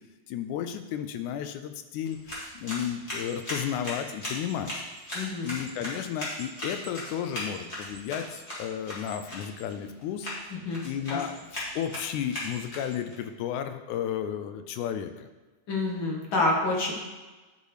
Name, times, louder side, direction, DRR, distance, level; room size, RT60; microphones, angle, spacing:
voice 1, 0.3-2.2 2.5-4.7 5.4-10.3 10.8-15.3, left 9 dB, 80° left, 8 dB, 2.0 m, -33 dB
sound 1, 2.0-13.1, left 1 dB, 25° left, 1.9 m, -38 dB
voice 2, 5.1-5.5 10.6-10.8 11.1-11.2 15.7-16.9, left 2 dB, 55° left, -1 dB, 1.6 m, -27 dB
10.5 x 5.5 x 3.2 m, 1.2 s
omnidirectional pair, 3.5 m